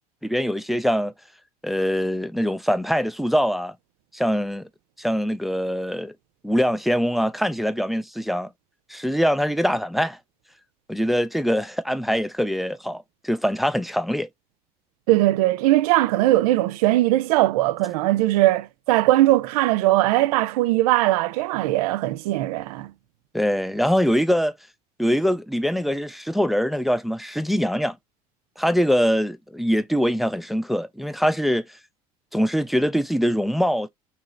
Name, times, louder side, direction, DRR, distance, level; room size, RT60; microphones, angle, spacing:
voice 1, 0.2-1.1 1.6-3.7 4.1-4.7 5.0-6.1 6.4-8.5 8.9-10.2 10.9-14.3 23.3-24.5 25.0-28.0 28.6-31.6 32.3-33.9, equal, ahead, 0.4 m, -23 dB
voice 2, 15.1-22.9, right 16 dB, 80° right, 0.4 m, -20 dB
3.1 x 2.8 x 4.0 m
hypercardioid pair, 70°, 19 cm